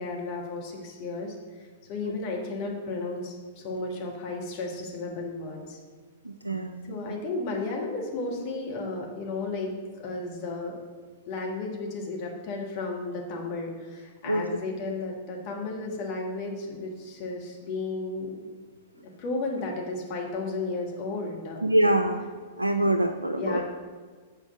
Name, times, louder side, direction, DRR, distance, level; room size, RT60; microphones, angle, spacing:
voice 1, 0.0-1.3 1.9-5.8 6.9-10.8 11.3-18.4 19.2-21.6 22.8-23.0 23.3-23.6, left 3 dB, 40° left, 0 dB, 1.5 m, -33 dB
voice 2, 6.2-6.9 14.2-14.6 21.6-22.3 22.6-23.6, right 1 dB, 90° right, 7 dB, 0.4 m, -25 dB
7.0 x 4.6 x 6.9 m, 1.5 s
figure-of-eight pair, 100°, 0 cm